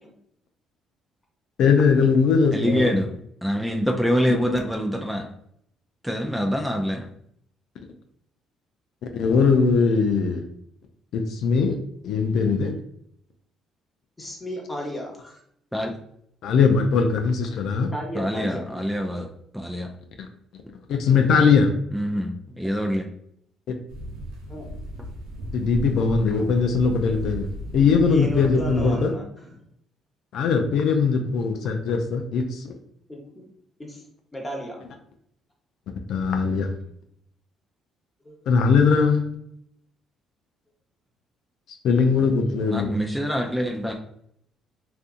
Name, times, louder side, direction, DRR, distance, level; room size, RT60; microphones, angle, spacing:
voice 1, 1.6-3.0 9.1-10.4 11.1-11.8 12.0-12.7 16.4-17.9 20.2-20.3 20.9-21.7 25.5-27.5 27.7-29.1 30.3-32.7 36.1-36.7 38.5-39.3 41.8-42.9, left 5 dB, 70° left, 4 dB, 0.3 m, -20 dB
voice 2, 2.5-5.3 6.0-7.1 15.7-15.9 18.1-19.3 19.5-19.9 21.9-23.0 42.7-43.9, equal, 5° right, 1 dB, 0.4 m, -25 dB
voice 3, 14.2-15.4 17.9-18.6 24.5-24.7 28.1-29.2 33.1-33.4 33.8-34.0 34.3-34.8 38.2-38.4, left 1 dB, 20° left, 0 dB, 1.0 m, -34 dB
sound 1, 23.9-28.9, equal, 90° right, 0.7 m, -36 dB
2.6 x 2.4 x 2.5 m, 0.71 s
supercardioid pair, 60°, 0 cm